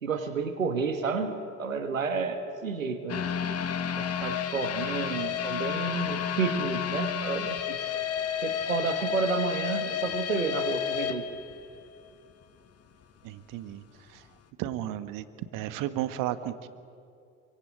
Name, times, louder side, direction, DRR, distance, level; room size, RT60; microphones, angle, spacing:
voice 1, 0.0-3.2 4.0-8.0 8.4-11.2, right 5 dB, 85° right, 7 dB, 1.6 m, -31 dB
sound 1, 3.1-12.1 12.4-12.5 13.0-13.1, left 9 dB, 40° left, 1.9 m, -31 dB
voice 2, 13.2-14.3 14.6-15.3 15.5-16.7, right 13 dB, 55° right, 12 dB, 1.7 m, -34 dB
27.0 x 24.5 x 8.6 m, 2.4 s
figure-of-eight pair, 55°, 39 cm